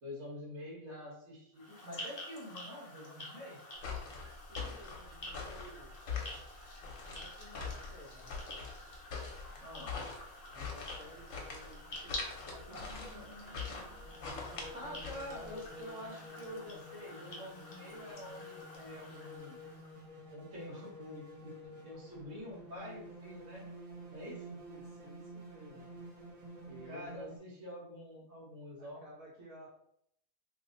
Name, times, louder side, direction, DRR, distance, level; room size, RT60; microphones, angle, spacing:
voice 1, 0.0-3.6 5.2-5.4 9.6-9.9 14.7-19.6 20.3-23.7 24.1-24.5 26.8-29.0, left 1 dB, 60° right, -5 dB, 1.6 m, -47 dB
sound 1, 1.5-20.0, left 1 dB, 35° left, 0.7 m, -49 dB
sound 2, 3.8-15.8, left 5 dB, 70° left, 1.1 m, -43 dB
voice 2, 4.5-6.0 7.0-8.6 10.5-13.9 14.2-15.0 15.4-16.1 24.1-25.9 26.6-27.2 28.8-29.7, right 1 dB, 80° right, -7 dB, 1.5 m, -55 dB
sound 3, 12.7-27.4, equal, 35° right, 0.6 m, -51 dB
3.1 x 2.1 x 3.7 m, 0.73 s
omnidirectional pair, 1.5 m